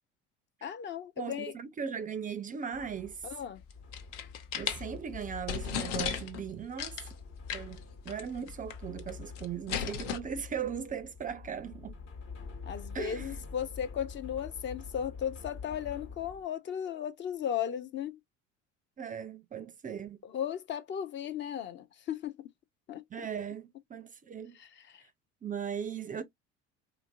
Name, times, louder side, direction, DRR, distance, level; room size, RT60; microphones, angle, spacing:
voice 1, 0.6-1.5 3.2-3.6 12.6-18.2 20.2-22.4 22.9-23.0 24.5-25.0, left 9 dB, 30° left, 0.5 m, -36 dB
voice 2, 1.2-3.3 4.5-7.1 7.5-12.0 12.9-13.4 19.0-20.2 23.1-24.6 25.4-26.2, right 7 dB, 25° right, 0.4 m, -38 dB
sound 1, 2.7-16.4, left 4 dB, 55° left, 1.1 m, -46 dB
sound 2, 3.7-4.8 5.2-5.3 5.5-6.4 6.8-7.1 7.5-7.8 8.1-8.2 8.5-9.1 9.4-10.2, left 8 dB, 75° left, 0.6 m, -35 dB
2.9 x 2.5 x 2.4 m
hypercardioid pair, 70°, 37 cm